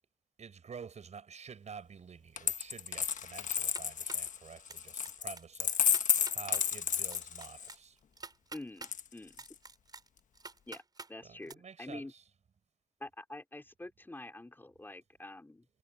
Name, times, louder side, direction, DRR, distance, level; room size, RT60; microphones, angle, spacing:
voice 1, 0.4-5.7 6.3-8.0 11.2-12.2, right 6 dB, 65° right, 7.8 m, -49 dB
Coin (dropping), 2.4-7.7 8.8-9.5, left 8 dB, 90° left, 1.2 m, -32 dB
sound 1, 3.5-4.3 4.7-5.1 5.4-5.5 5.8-6.6 7.1-8.9 9.3-11.1 11.5-11.6, right 3 dB, 30° right, 5.4 m, -48 dB
voice 2, 8.5-9.4 10.7-10.8 11.1-12.1 13.0-15.7, left 2 dB, 15° left, 4.2 m, -46 dB
wide cardioid pair, 130°, 13 cm